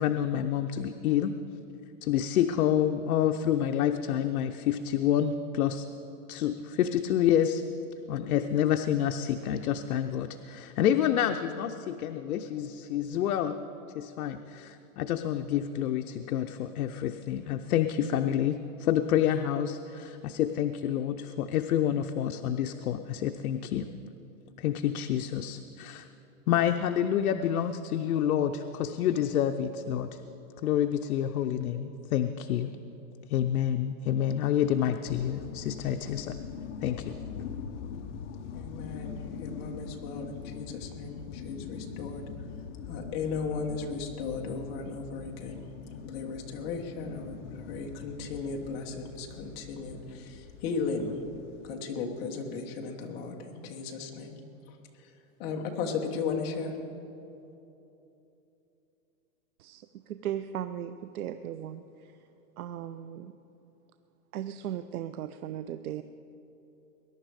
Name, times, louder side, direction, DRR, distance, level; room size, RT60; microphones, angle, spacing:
voice 1, 0.0-1.3 2.0-5.9 6.3-7.6 8.1-13.6 13.9-23.9 24.6-26.1 26.5-30.1 30.6-32.7 33.3-36.4 36.8-37.2, left 10 dB, 85° left, 6 dB, 0.7 m, -28 dB
sound 1, 35.1-51.8, left 7 dB, 55° left, 0.9 m, -43 dB
voice 2, 38.5-42.5 42.8-51.2 51.6-54.4 54.6-56.8, left 4 dB, 25° left, 1 dB, 1.2 m, -36 dB
voice 3, 59.6-62.1 62.6-63.3 64.3-66.0, right 10 dB, 85° right, 11 dB, 0.7 m, -37 dB
20.5 x 11.0 x 4.8 m, 2.9 s
supercardioid pair, 175°, 42 cm